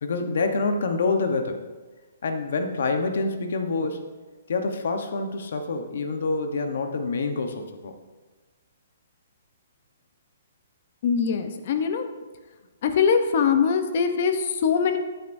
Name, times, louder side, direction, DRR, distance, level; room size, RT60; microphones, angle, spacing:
voice 1, 0.0-1.6 2.2-4.1 4.5-7.9, left 3 dB, 60° left, 6 dB, 1.0 m, -26 dB
voice 2, 11.0-12.1 12.8-15.0, left 6 dB, 40° left, 7 dB, 0.8 m, -22 dB
12.5 x 9.1 x 2.7 m, 1.3 s
hypercardioid pair, 175°, 0 cm